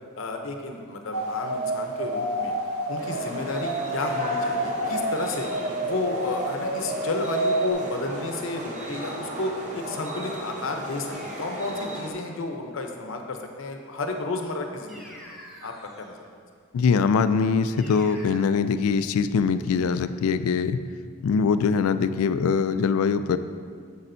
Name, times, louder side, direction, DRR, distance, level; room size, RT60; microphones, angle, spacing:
voice 1, 0.2-2.5 2.9-5.5 5.8-15.3 15.6-16.2, left 2 dB, 65° left, 4 dB, 0.7 m, -32 dB
sound 1, 1.1-7.7, right 1 dB, 85° right, 0.9 m, -29 dB
sound 2, 3.0-12.1, right 1 dB, 35° right, 0.8 m, -36 dB
sound 3, 11.1-12.0 14.9-16.2 17.8-18.4, left 1 dB, ahead, 1.1 m, -46 dB
voice 2, 16.7-20.8 21.2-23.4, left 5 dB, 85° left, 12 dB, 0.3 m, -22 dB
8.5 x 7.0 x 2.7 m, 2.1 s
head